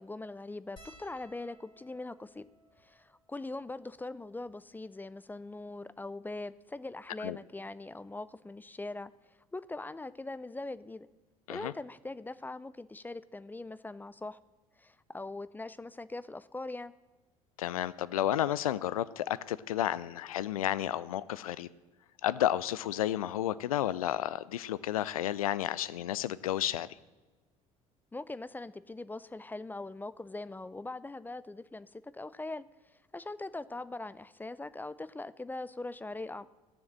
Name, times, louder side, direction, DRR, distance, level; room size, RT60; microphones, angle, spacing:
voice 1, 0.0-2.5 2.8-11.1 11.5-14.4 14.8-16.9 28.1-36.5, left 2 dB, 10° left, 16 dB, 0.4 m, -41 dB
sound 1, 0.8-5.4 6.1-6.2 6.4-6.6 7.8-8.1 9.5-9.6 9.9-10.1, equal, 30° left, 4.4 m, -61 dB
voice 2, 17.6-21.7 22.2-26.9, left 12 dB, 75° left, 19 dB, 0.4 m, -31 dB
14.5 x 7.1 x 7.5 m, 1.3 s
figure-of-eight pair, 60°, 18 cm